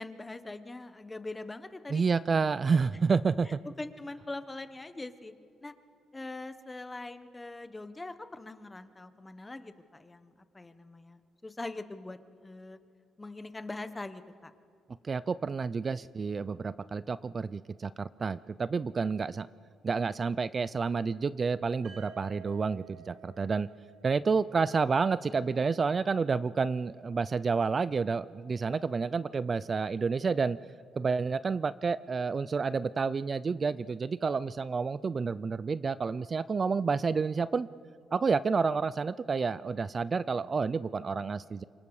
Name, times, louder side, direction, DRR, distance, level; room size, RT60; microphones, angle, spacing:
voice 1, 0.0-2.0 3.4-5.3 5.6-5.7 6.1-12.8 13.2-14.5, left 2 dB, 20° left, 11 dB, 1.2 m, -42 dB
voice 2, 1.9-3.6 15.0-19.5 19.8-23.7 24.0-30.6 31.0-37.7 38.1-41.6, right 5 dB, 35° right, 16 dB, 0.4 m, -29 dB
sound 1, 21.8-25.7, right 10 dB, 55° right, 5.1 m, -53 dB
27.0 x 24.0 x 4.9 m, 2.3 s
cardioid pair, 90°, 0 cm